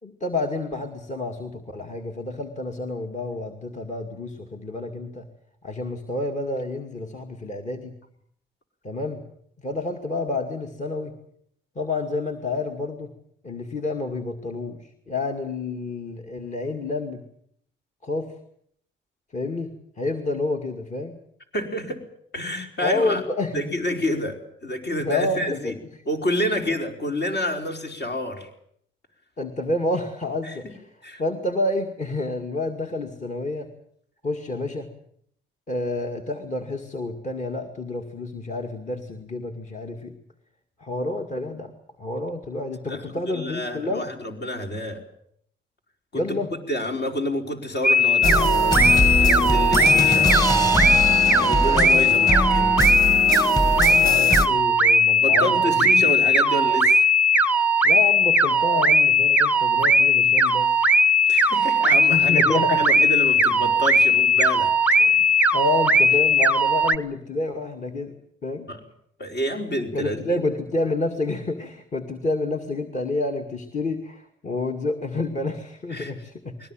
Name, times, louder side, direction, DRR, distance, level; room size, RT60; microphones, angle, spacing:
voice 1, 0.0-5.3 5.6-7.9 8.8-9.2 9.6-11.1 11.8-13.1 13.4-17.2 18.0-18.3 19.3-21.2 22.8-23.5 25.0-25.7 29.4-30.9 31.2-33.7 34.2-34.9 35.7-40.2 40.8-41.7 42.0-44.1 46.1-46.5 53.9-56.0 57.8-60.7 62.1-62.9 65.0-68.1 68.4-68.7 69.9-76.6, left 2 dB, 35° left, 3 dB, 2.4 m, -29 dB
voice 2, 21.5-22.1 22.3-23.2 23.5-25.7 26.0-28.5 30.4-30.5 31.0-31.2 42.9-45.0 46.1-46.4 46.7-50.4 51.4-52.9 55.2-57.1 61.3-64.7 68.7-68.8 69.2-70.4 75.9-76.1, left 1 dB, 60° left, 3 dB, 4.7 m, -28 dB
sound 1, 47.8-67.0, equal, 5° right, 0.9 m, -18 dB
sound 2, 48.2-54.5, left 1 dB, 20° left, 2.5 m, -22 dB
21.5 x 18.5 x 9.1 m, 0.68 s
cardioid pair, 90°, 20 cm